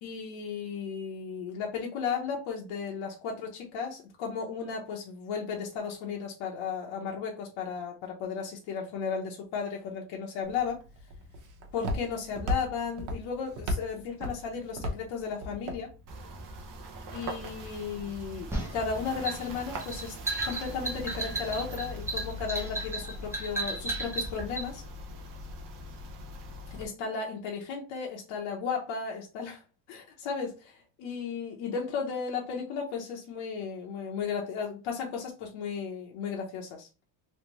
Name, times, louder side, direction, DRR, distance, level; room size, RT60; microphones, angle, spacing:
voice 1, 0.0-10.8 11.7-15.9 17.1-20.2 20.4-24.8 26.7-29.6 29.9-36.9, left 6 dB, 85° left, 0.9 m, -35 dB
Walk footsteps, 10.4-16.6, left 1 dB, 80° right, 1.1 m, -36 dB
sound 1, 16.1-26.8, equal, 45° right, 0.7 m, -41 dB
sound 2, 18.5-24.7, right 3 dB, 5° right, 0.7 m, -34 dB
3.3 x 2.6 x 3.0 m
cardioid pair, 175°, 46 cm